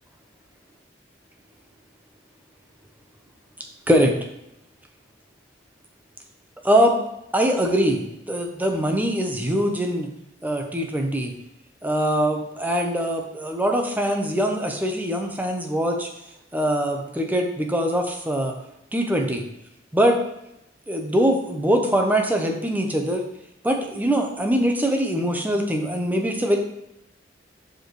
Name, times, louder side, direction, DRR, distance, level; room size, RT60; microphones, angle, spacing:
voice 1, 6.6-7.0 7.3-10.1 10.4-11.3 11.8-16.1 16.5-18.5 18.9-19.4 19.9-20.2 20.9-23.2 23.6-26.6, equal, 10° right, 3 dB, 0.8 m, -22 dB
6.9 x 5.0 x 3.1 m, 0.84 s
head